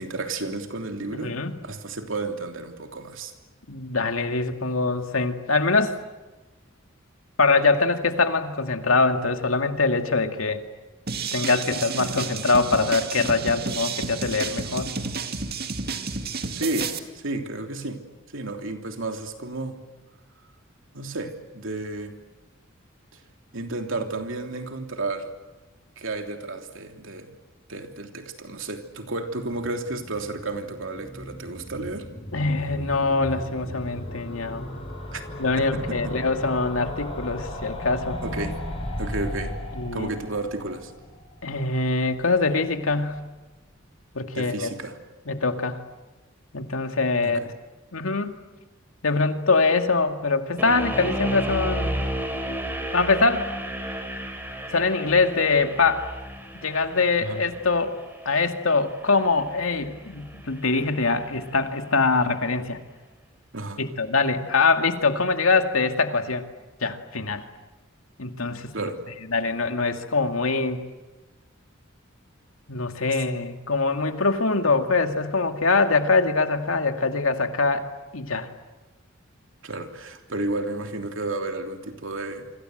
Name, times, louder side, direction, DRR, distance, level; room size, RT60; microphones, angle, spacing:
voice 1, 0.0-3.3 16.5-18.0 18.3-19.8 20.9-22.2 23.1-23.2 23.5-25.3 26.0-27.3 27.7-32.1 35.1-35.2 35.6-36.1 38.2-38.6 39.0-39.6 39.9-40.9 44.3-45.0 47.2-47.3 57.2-57.4 63.5-63.8 68.7-69.0 79.6-82.5, right 2 dB, 70° right, 5 dB, 3.2 m, -32 dB
voice 2, 1.1-1.5 3.7-5.9 7.4-10.6 11.3-14.9 32.3-34.7 35.4-38.2 39.7-40.1 41.4-43.2 44.1-44.7 45.3-45.8 46.5-47.4 47.9-48.4 49.0-52.0 52.9-53.5 54.7-56.1 56.5-57.9 58.3-62.8 63.8-66.4 66.8-67.4 68.2-68.7 69.3-70.8 72.7-78.5, left 3 dB, 90° left, 6 dB, 2.3 m, -23 dB
sound 1, 11.1-17.0, right 4 dB, 50° right, 2.2 m, -31 dB
sound 2, 29.4-42.3 42.6-42.7 42.9-43.0 43.2-43.3, left 1 dB, 30° left, 5.9 m, -36 dB
sound 3, 50.6-61.6, equal, 10° right, 4.3 m, -33 dB
27.5 x 25.5 x 8.0 m, 1.2 s
head